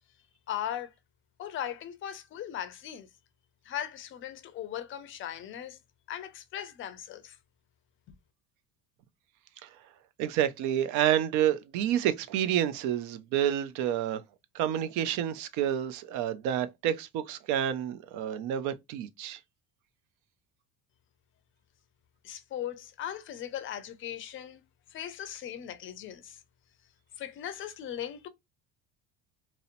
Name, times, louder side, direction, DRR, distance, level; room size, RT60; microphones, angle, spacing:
voice 1, 0.5-0.9 1.4-3.1 3.6-5.8 6.1-7.4 22.2-24.6 24.9-26.4 27.2-28.3, left 10 dB, 40° left, 0.5 m, -38 dB
voice 2, 10.2-14.2 14.5-19.4, right 10 dB, 65° right, 0.5 m, -29 dB
2.7 x 2.0 x 2.5 m
cardioid pair, 125°, 32 cm